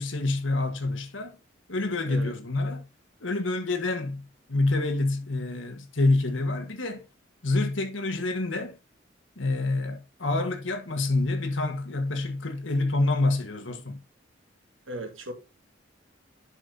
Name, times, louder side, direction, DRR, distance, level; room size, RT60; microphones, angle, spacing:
voice 1, 0.0-1.4 1.7-2.8 3.2-7.0 7.4-8.8 9.4-14.0, left 2 dB, 80° left, 1.5 m, -27 dB
voice 2, 14.9-15.3, right 1 dB, 90° right, 1.9 m, -36 dB
10.0 x 5.5 x 2.7 m
head